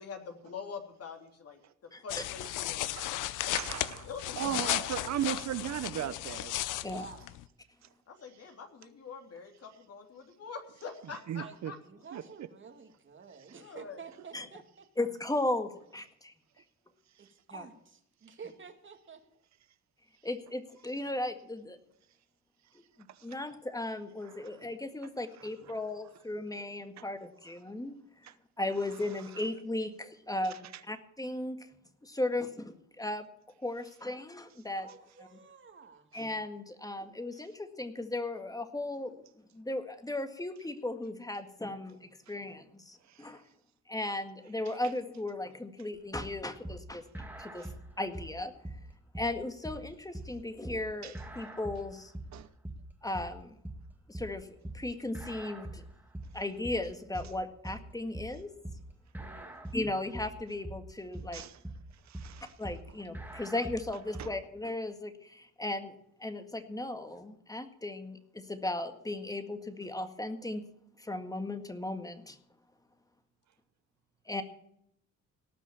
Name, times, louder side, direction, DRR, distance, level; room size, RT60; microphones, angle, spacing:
voice 1, 0.0-1.6 2.0-3.6 4.0-4.9 5.2-5.4 8.1-11.8 13.5-14.0 14.3-14.5, left 5 dB, 55° left, 3.2 m, -45 dB
voice 2, 1.9-2.2 4.5-4.6 6.8-7.1 14.3-14.5 15.0-16.3 17.5-17.6 20.2-21.8 23.2-28.0 28.6-31.7 32.0-33.3 33.6-34.9 36.1-39.2 39.5-43.4 43.9-47.7 48.0-48.5 49.2-52.1 53.0-53.6 54.1-54.5 54.7-55.8 56.3-58.5 59.7-61.4 62.6-65.9 66.2-70.6 71.0-72.4 74.3-74.4, left 2 dB, 10° left, 1.8 m, -36 dB
sound 1, 2.1-7.5, left 15 dB, 90° left, 0.7 m, -35 dB
voice 3, 3.5-4.1 4.4-6.5 11.3-11.7 12.1-12.2 24.4-24.5 27.0-27.1 28.2-28.3 29.3-29.4 43.1-43.3 47.6-47.7 51.0-51.1 52.3-52.5 61.3-61.6 62.1-62.5 64.2-64.3, right 11 dB, 65° right, 0.9 m, -36 dB
voice 4, 6.8-7.2 11.4-11.6 11.8-14.9 17.2-19.2 34.8-36.1 59.2-59.7, right 5 dB, 40° right, 2.2 m, -50 dB
sound 2, 46.1-64.4, right 1 dB, 5° right, 2.0 m, -43 dB
18.0 x 6.2 x 8.4 m
cardioid pair, 90°, 30 cm